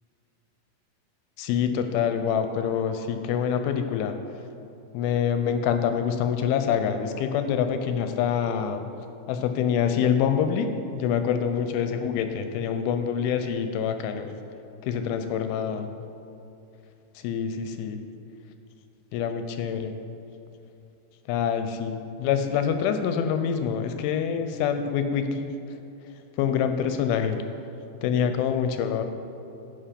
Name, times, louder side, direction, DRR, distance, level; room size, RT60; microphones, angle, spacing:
voice 1, 1.4-4.2 4.9-8.8 9.3-14.3 14.8-15.9 17.2-18.0 19.1-20.0 21.3-25.5 26.4-27.4 28.0-29.0, left 7 dB, 85° left, 7 dB, 2.3 m, -26 dB
11.5 x 4.7 x 5.1 m, 2.8 s
omnidirectional pair, 4.5 m